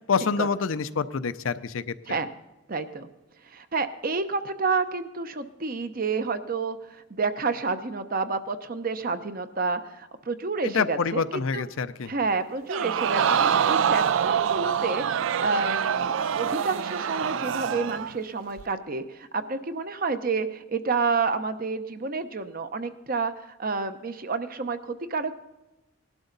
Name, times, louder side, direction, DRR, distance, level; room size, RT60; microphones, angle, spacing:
voice 1, 0.1-2.2 10.6-12.1, left 5 dB, 75° left, 13 dB, 0.6 m, -27 dB
voice 2, 2.7-3.1 3.5-6.8 7.1-11.6 12.1-23.3 23.6-25.3, right 4 dB, 45° right, 10 dB, 0.8 m, -29 dB
Crowd, 12.7-18.2 18.6-18.7, right 8 dB, 65° right, 0.4 m, -25 dB
19.0 x 11.5 x 4.0 m, 0.99 s
head